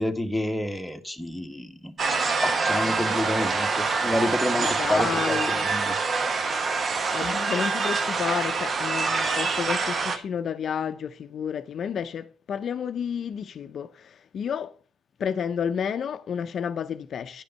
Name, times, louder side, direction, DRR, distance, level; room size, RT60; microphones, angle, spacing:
voice 1, 0.0-5.9, left 1 dB, 5° left, 1.4 m, -29 dB
sound 1, 2.0-10.2, right 4 dB, 45° right, 1.1 m, -25 dB
voice 2, 4.6-5.7 7.1-14.8 15.2-17.4, left 7 dB, 60° left, 0.6 m, -31 dB
10.5 x 5.1 x 5.5 m
cardioid pair, 90°, 0 cm